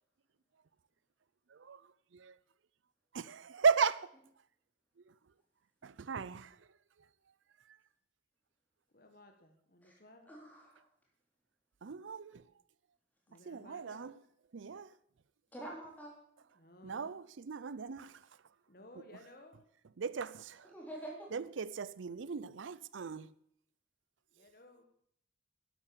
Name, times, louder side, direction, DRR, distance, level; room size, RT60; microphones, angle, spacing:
voice 1, 1.5-1.8 2.1-2.4 3.1-4.1 5.8-6.6 11.8-12.4 13.5-14.1 14.5-14.9 16.8-18.2 20.0-20.7 21.3-23.3, right 6 dB, 85° right, 0.5 m, -36 dB
voice 2, 8.9-10.3 13.3-14.1 16.5-17.2 18.7-19.7 24.3-24.8, left 1 dB, 50° left, 1.7 m, -58 dB
voice 3, 10.3-10.9 15.5-16.1 20.7-21.3, right 1 dB, 10° left, 3.9 m, -46 dB
11.5 x 11.0 x 6.9 m
head